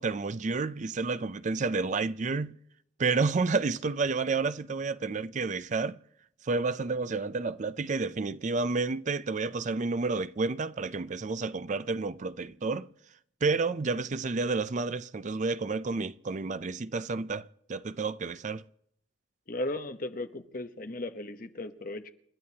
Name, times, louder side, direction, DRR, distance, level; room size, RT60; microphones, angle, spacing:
voice 1, 0.0-2.5 3.0-6.0 6.4-12.9 13.4-18.6, right 4 dB, 40° right, 0.5 m, -30 dB
voice 2, 19.5-22.1, left 2 dB, 45° left, 1.0 m, -36 dB
29.0 x 12.5 x 2.9 m
head